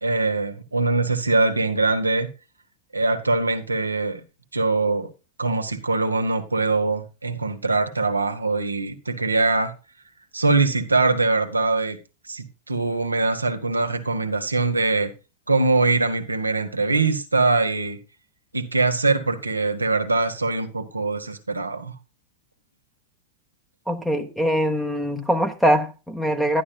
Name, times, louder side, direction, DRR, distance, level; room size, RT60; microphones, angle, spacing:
voice 1, 0.0-2.3 2.9-4.2 4.5-5.1 5.4-9.7 10.3-12.0 12.3-15.1 15.5-18.0 18.5-21.9, right 3 dB, 80° right, 1.3 m, -22 dB
voice 2, 23.9-26.6, equal, ahead, 1.3 m, -22 dB
11.5 x 11.0 x 2.3 m
figure-of-eight pair, 90°, 0 cm